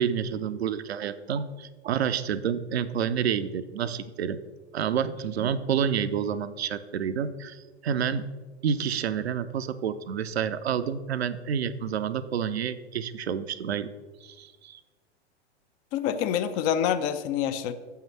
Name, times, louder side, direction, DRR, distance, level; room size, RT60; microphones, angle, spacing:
voice 1, 0.0-4.4 4.7-8.3 8.6-13.9 14.2-14.8, right 8 dB, 65° right, 12 dB, 0.6 m, -29 dB
voice 2, 15.9-17.7, left 9 dB, 30° left, 11 dB, 0.4 m, -26 dB
7.1 x 5.7 x 5.8 m, 1.3 s
figure-of-eight pair, 95°, 34 cm